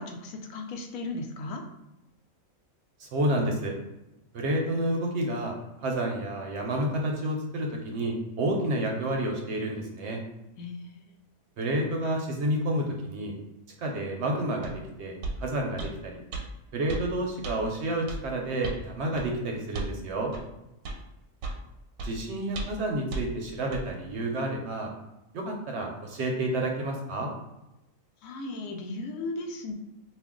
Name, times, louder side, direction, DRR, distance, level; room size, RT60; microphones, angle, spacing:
voice 1, 0.0-1.6 10.6-11.0 28.2-29.7, left 2 dB, 85° left, 4 dB, 1.0 m, -36 dB
voice 2, 3.0-3.7 4.3-5.5 5.8-10.2 11.6-13.3 13.8-16.2 16.7-20.3 22.0-24.9 25.3-27.3, right 1 dB, 65° right, 1 dB, 0.8 m, -30 dB
sound 1, 14.6-14.8 15.2-15.4 15.8-15.9 16.3-16.5 16.9-17.1 17.4-17.6 18.1-18.2 18.6-18.8 19.2-19.3 19.7-20.0 20.3-20.5 20.9-21.0 21.4-21.6 22.0-22.1 22.6-22.8 23.1-23.3 23.7-23.9, right 3 dB, 90° right, 1.0 m, -34 dB
2.5 x 2.4 x 3.6 m, 0.94 s
omnidirectional pair, 1.4 m